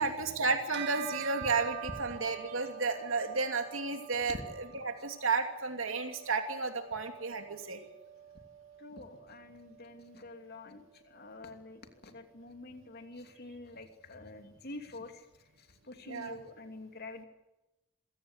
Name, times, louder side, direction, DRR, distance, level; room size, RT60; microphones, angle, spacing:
voice 1, 0.0-7.8 16.1-16.4, right 4 dB, 75° right, 5 dB, 2.8 m, -32 dB
Bell, 0.7-10.4, right 10 dB, 55° right, 2.3 m, -46 dB
voice 2, 8.8-15.3 15.6-17.2, left 2 dB, 50° left, 6 dB, 2.9 m, -47 dB
27.0 x 16.5 x 8.2 m, 1.0 s
head